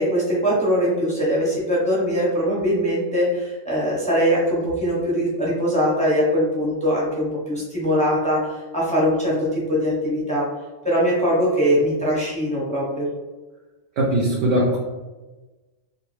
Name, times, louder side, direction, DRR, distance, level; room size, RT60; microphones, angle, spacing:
voice 1, 0.0-10.5 10.8-13.1, equal, 10° left, -6 dB, 0.5 m, -21 dB
voice 2, 14.0-14.8, right 1 dB, 70° right, -3 dB, 0.9 m, -20 dB
2.5 x 2.2 x 3.1 m, 1.2 s
omnidirectional pair, 1.4 m